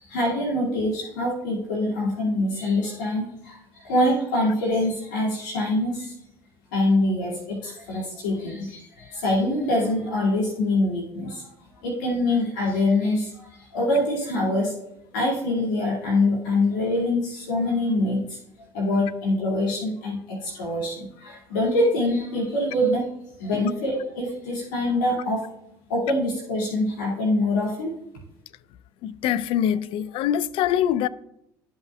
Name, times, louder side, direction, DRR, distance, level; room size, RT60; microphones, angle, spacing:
voice 1, 0.0-6.1 6.7-11.5 11.8-14.7 15.1-18.4 18.7-23.0 23.4-25.4 25.9-27.9, left 1 dB, 85° left, 2.3 m, -24 dB
voice 2, 29.0-31.1, left 10 dB, 60° left, 0.4 m, -24 dB
13.0 x 5.5 x 2.3 m
hypercardioid pair, 75°, 10 cm